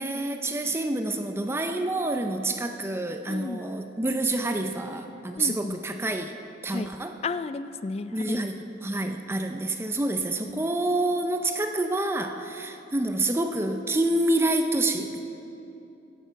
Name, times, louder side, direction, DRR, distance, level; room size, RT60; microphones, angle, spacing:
voice 1, 0.0-6.3 6.6-7.1 8.1-8.5 8.8-15.2, right 2 dB, 15° right, 6 dB, 0.5 m, -27 dB
voice 2, 3.3-3.6 5.4-5.8 6.7-6.9 7.2-8.4 10.4-10.6, left 4 dB, 35° left, 13 dB, 0.3 m, -33 dB
16.0 x 10.5 x 4.6 m, 2.8 s
head